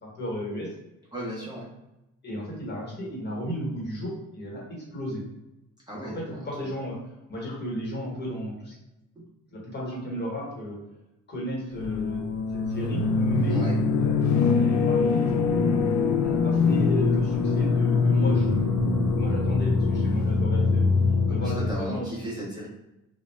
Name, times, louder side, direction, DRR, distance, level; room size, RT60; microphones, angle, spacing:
voice 1, 0.0-0.7 2.2-5.2 6.0-7.0 7.3-8.7 9.5-10.8 11.3-12.2 12.5-15.0 16.2-18.7 19.2-20.9 21.3-22.1, equal, 35° left, -4 dB, 1.2 m, -34 dB
voice 2, 1.1-1.7 5.9-6.6 13.5-13.8 21.3-22.7, equal, 15° right, -7 dB, 0.8 m, -36 dB
sound 1, 11.8-21.7, left 4 dB, 70° left, 0.4 m, -23 dB
2.3 x 2.1 x 3.2 m, 0.92 s
cardioid pair, 90°, 30 cm